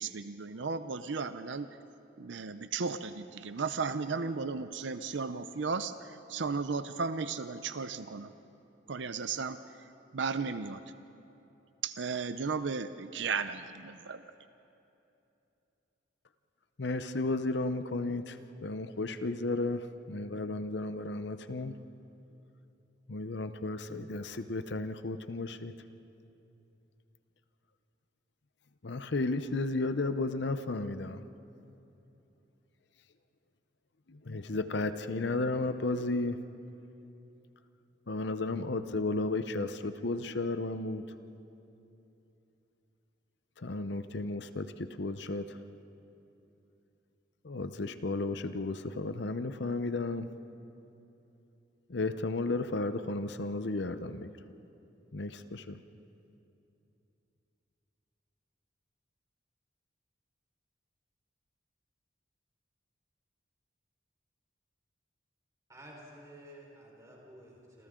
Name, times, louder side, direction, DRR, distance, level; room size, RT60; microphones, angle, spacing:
voice 1, 0.0-1.7 2.2-5.9 6.3-8.3 8.9-9.6 10.1-10.8 11.8-14.2, right 5 dB, 75° right, 11 dB, 0.6 m, -35 dB
voice 2, 16.8-21.8 23.1-25.7 28.8-31.2 34.1-36.5 38.1-41.0 43.6-45.6 47.4-50.4 51.9-54.3 55.1-55.8, left 2 dB, 65° left, 10 dB, 0.8 m, -33 dB
voice 3, 65.7-67.9, right 1 dB, 15° right, -2 dB, 4.5 m, -52 dB
28.0 x 27.5 x 3.8 m, 2.9 s
head